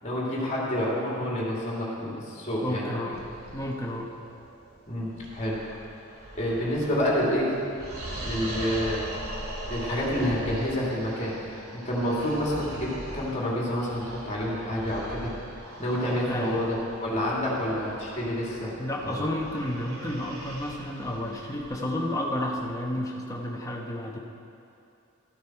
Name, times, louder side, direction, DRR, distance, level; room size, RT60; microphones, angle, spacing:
voice 1, 0.0-3.0 4.9-5.8 6.3-7.5 8.2-9.1 9.7-15.3 15.8-18.7 19.0-19.3, equal, 35° left, -5 dB, 2.9 m, -28 dB
voice 2, 2.6-3.2 3.5-4.1 16.3-16.6 18.8-24.2, left 1 dB, 15° left, -1 dB, 1.1 m, -31 dB
sound 1, 3.1-22.8, right 1 dB, 90° right, 2.4 m, -41 dB
13.5 x 9.3 x 4.6 m, 2.6 s
head